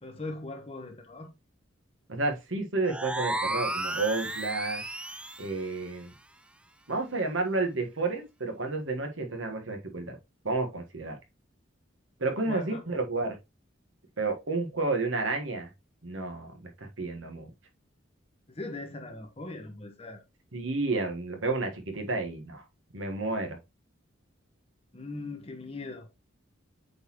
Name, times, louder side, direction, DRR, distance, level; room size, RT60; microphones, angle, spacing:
voice 1, 0.0-1.3 12.4-12.8 18.5-20.2 24.9-26.1, left 2 dB, 30° left, 1.2 m, -40 dB
voice 2, 2.1-4.8 5.4-6.1 6.9-10.2 10.4-11.2 12.2-13.4 14.2-15.7 16.0-17.5 20.5-22.6 22.9-23.6, right 3 dB, 75° right, 1.5 m, -31 dB
sound 1, 2.8-5.6, right 1 dB, 5° right, 0.3 m, -33 dB
7.9 x 4.1 x 3.0 m
head